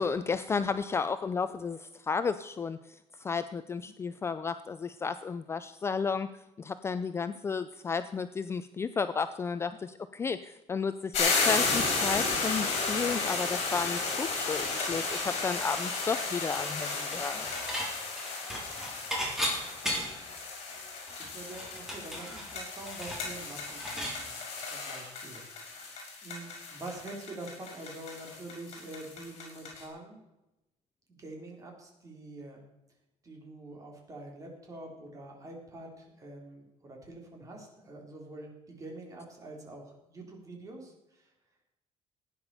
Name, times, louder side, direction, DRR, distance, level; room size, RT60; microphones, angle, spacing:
voice 1, 0.0-6.3 6.6-17.5, left 5 dB, 20° left, 11 dB, 0.5 m, -33 dB
sound 1, 11.1-29.8, left 4 dB, 55° left, 6.2 m, -33 dB
Dishes pots and pans / Chink clink, 17.1-17.9 18.2-20.3 20.7-20.8 21.1-24.2, equal, 5° right, 4.0 m, -35 dB
voice 2, 21.2-30.2 31.1-32.7 33.2-41.3, right 2 dB, 25° right, 1 dB, 3.7 m, -46 dB
16.0 x 9.9 x 6.9 m, 0.94 s
cardioid pair, 165°, 12 cm